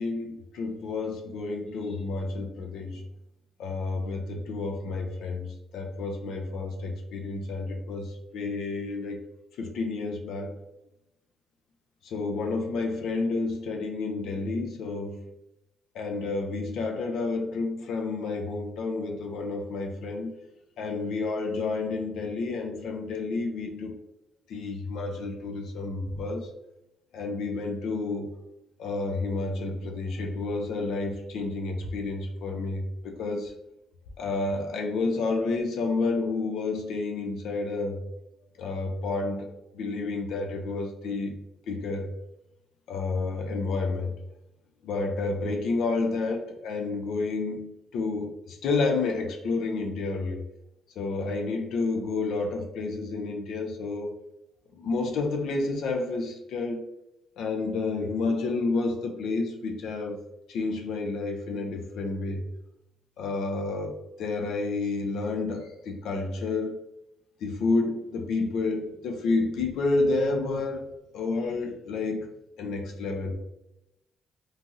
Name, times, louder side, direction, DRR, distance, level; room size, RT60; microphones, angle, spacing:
voice 1, 0.0-3.0 3.6-9.2 9.6-10.5 12.0-15.3 15.9-20.3 20.8-23.9 24.5-26.5 27.1-28.3 28.8-33.5 34.2-38.1 38.6-41.4 41.7-42.1 42.9-44.1 44.8-50.4 51.0-54.2 54.8-56.8 57.4-60.2 60.5-62.4 63.2-66.8 67.4-70.9 71.1-72.3 72.6-73.3, left 3 dB, 80° left, 3 dB, 0.4 m, -30 dB
3.0 x 2.5 x 2.6 m, 0.88 s
cardioid pair, 90°, 0 cm